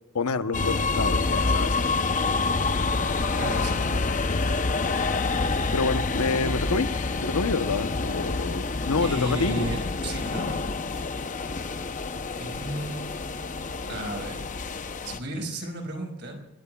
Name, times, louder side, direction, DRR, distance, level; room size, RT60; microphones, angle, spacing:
voice 1, 0.1-1.8 5.7-9.7, left 4 dB, 85° left, 0.9 m, -28 dB
sound 1, 0.5-15.2, left 3 dB, 35° left, 0.7 m, -27 dB
voice 2, 3.3-4.1 9.0-10.6 12.4-14.4 15.0-16.4, right 1 dB, 50° right, 5.2 m, -34 dB
29.5 x 19.5 x 2.3 m
head